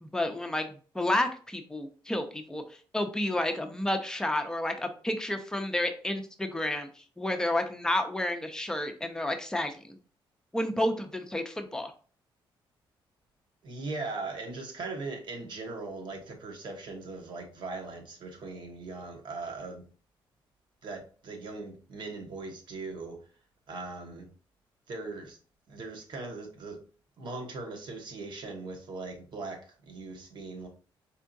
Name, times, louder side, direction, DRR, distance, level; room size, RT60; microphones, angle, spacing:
voice 1, 0.0-2.6 2.9-9.7 10.5-11.9, left 1 dB, 5° left, 5 dB, 0.6 m, -30 dB
voice 2, 13.6-19.9 20.8-23.3 23.7-24.3 24.9-25.4 25.7-26.8 27.2-30.7, right 3 dB, 60° right, 3 dB, 1.2 m, -39 dB
4.6 x 3.4 x 2.6 m, 0.39 s
cardioid pair, 125°, 9 cm